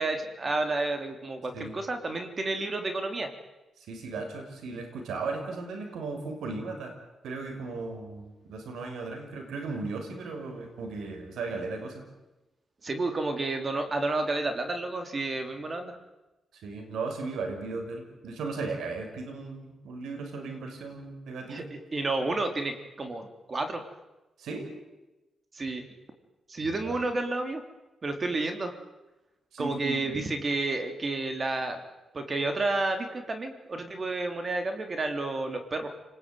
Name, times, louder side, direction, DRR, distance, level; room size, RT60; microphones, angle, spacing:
voice 1, 0.0-3.3 12.8-16.0 21.5-21.6 21.9-23.8 25.5-25.8 26.5-27.6 28.0-28.7 29.6-31.8 32.1-35.9, right 2 dB, 35° right, 6 dB, 3.6 m, -30 dB
voice 2, 3.8-6.9 7.2-12.0 16.5-21.7 24.4-24.7 26.6-27.0 29.5-30.3, right 3 dB, 90° right, 5 dB, 6.0 m, -36 dB
29.0 x 20.5 x 9.3 m, 1.0 s
cardioid pair, 90°, 0 cm